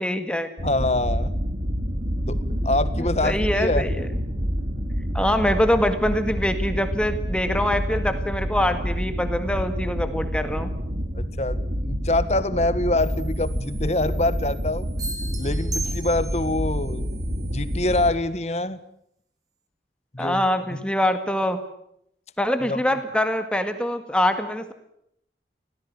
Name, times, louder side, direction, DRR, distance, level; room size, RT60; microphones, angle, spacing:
voice 1, 0.0-0.5 3.2-4.1 5.1-10.7 20.2-21.6 22.4-24.7, left 1 dB, 5° left, 8 dB, 1.8 m, -24 dB
voice 2, 0.6-1.3 2.3-3.9 11.1-14.9 15.4-17.0 17.4-18.8 20.1-20.8 22.6-22.8, left 2 dB, 40° left, 14 dB, 1.4 m, -25 dB
sound 1, 0.6-18.1, equal, 50° right, 2.9 m, -28 dB
sound 2, 15.0-16.6, right 2 dB, 20° right, 3.0 m, -34 dB
27.0 x 18.0 x 9.3 m, 0.73 s
head